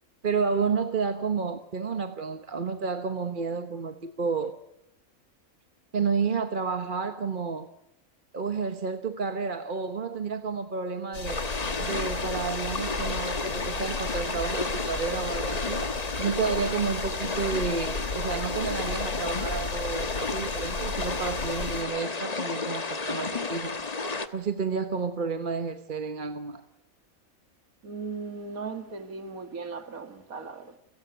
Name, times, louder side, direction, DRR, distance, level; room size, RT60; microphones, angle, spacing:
voice 1, 0.2-4.5 5.9-7.7 8.3-11.4 11.8-15.9 16.2-23.8 24.3-26.6, right 5 dB, 40° right, 1.1 m, -30 dB
sound 1, 11.1-21.8, left 3 dB, 75° left, 3.2 m, -36 dB
sound 2, 11.2-24.3, left 4 dB, 30° left, 1.2 m, -32 dB
voice 2, 27.8-30.8, right 4 dB, 85° right, 2.5 m, -37 dB
28.0 x 17.0 x 9.2 m
omnidirectional pair, 1.4 m